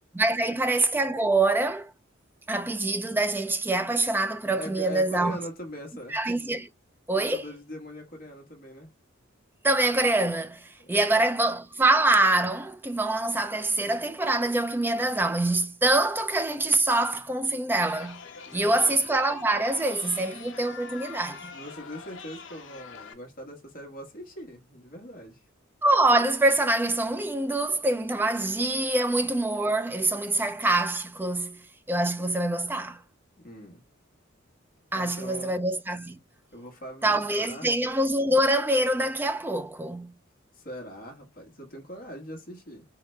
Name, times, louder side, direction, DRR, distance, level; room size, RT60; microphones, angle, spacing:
voice 1, 0.1-1.9 2.5-5.4 6.1-6.7 7.1-7.4 9.6-18.2 18.5-21.5 25.8-31.6 31.9-33.0 34.9-36.2 37.0-40.1, right 2 dB, 10° right, 0.4 m, -25 dB
voice 2, 4.5-6.2 7.2-8.9 10.8-11.2 18.3-19.0 21.5-25.4 33.4-33.8 34.9-35.6 36.5-37.7 40.5-42.8, equal, 45° left, 1.2 m, -41 dB
Chatter, 17.8-23.1, left 5 dB, 65° left, 0.9 m, -44 dB
4.8 x 2.2 x 3.1 m
head